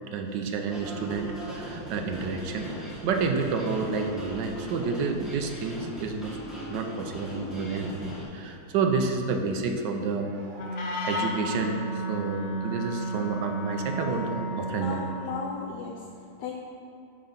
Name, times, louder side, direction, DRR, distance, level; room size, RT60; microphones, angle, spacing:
voice 1, 0.1-6.4 6.7-15.2, right 4 dB, 75° right, 4 dB, 1.3 m, -30 dB
sound 1, 0.7-8.2, right 1 dB, ahead, 1.3 m, -39 dB
Wind instrument woodwind instrument, 10.5-15.4, right 1 dB, 55° left, 0.7 m, -32 dB
voice 2, 14.8-16.0 16.4-16.5, left 6 dB, 75° left, 0 dB, 1.2 m, -35 dB
8.8 x 3.8 x 5.8 m, 2.5 s
omnidirectional pair, 2.0 m